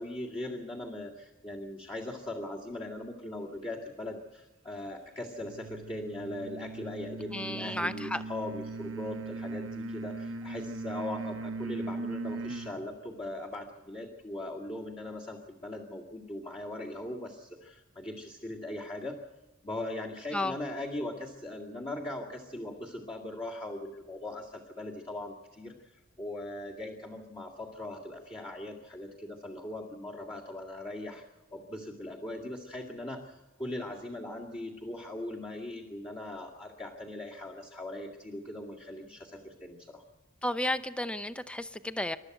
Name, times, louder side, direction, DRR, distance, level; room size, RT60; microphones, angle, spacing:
voice 1, 0.0-19.2 19.6-31.2 31.5-40.0, left 1 dB, 25° left, -4 dB, 2.2 m, -40 dB
sound 1, 5.4-12.8, right 3 dB, 65° right, 0.9 m, -39 dB
voice 2, 7.3-8.2 20.3-20.5 40.4-42.2, left 1 dB, 5° left, 11 dB, 0.7 m, -32 dB
28.0 x 12.5 x 8.0 m, 1.1 s
head